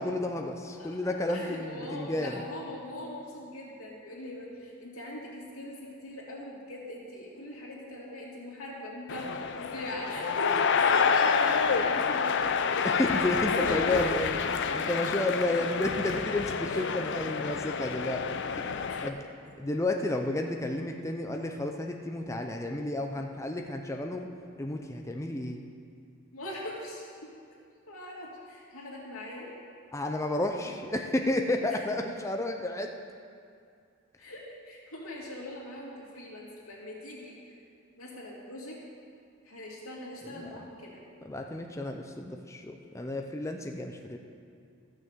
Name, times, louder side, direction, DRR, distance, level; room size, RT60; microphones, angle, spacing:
voice 1, 0.0-2.4 12.8-18.3 18.6-19.3 19.6-24.3 24.6-25.6 29.9-32.9 40.4-40.5 41.2-44.2, left 1 dB, 15° left, 3 dB, 0.6 m, -31 dB
voice 2, 1.3-13.3 13.6-14.1 16.0-16.1 16.7-16.8 18.9-19.0 26.3-27.3 27.9-29.5 30.5-30.7 34.2-37.5 38.0-38.8 39.4-41.0, left 1 dB, 80° left, -4 dB, 2.8 m, -41 dB
sound 1, 9.1-19.1, left 6 dB, 60° left, 0.6 m, -28 dB
13.5 x 6.4 x 7.4 m, 2.3 s
head